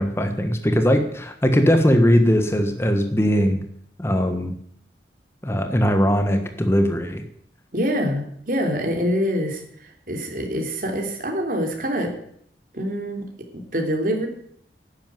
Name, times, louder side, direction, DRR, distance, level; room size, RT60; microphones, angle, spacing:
voice 1, 0.0-3.6 4.0-4.5 5.4-7.2, equal, 15° left, 6 dB, 1.4 m, -20 dB
voice 2, 7.7-12.1 12.7-13.2 13.5-14.3, equal, 50° right, 3 dB, 3.3 m, -25 dB
11.5 x 10.0 x 9.4 m, 0.66 s
head